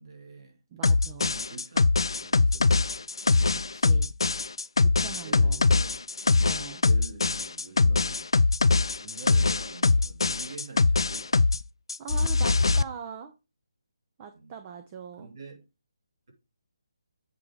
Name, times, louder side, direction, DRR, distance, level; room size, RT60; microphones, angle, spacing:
voice 1, 0.0-0.6 1.2-3.1 5.2-6.1 6.8-8.3 9.0-11.5 14.3-14.5 15.2-15.6, right 3 dB, 60° right, 2.8 m, -46 dB
voice 2, 0.7-1.3 3.5-4.1 4.8-5.6 6.4-6.8 12.0-13.3 14.2-15.3, right 7 dB, 25° right, 0.7 m, -42 dB
sound 1, 0.8-11.6 11.9-12.8, left 3 dB, 80° left, 0.4 m, -23 dB
8.3 x 3.6 x 4.8 m
figure-of-eight pair, 155°, 3 cm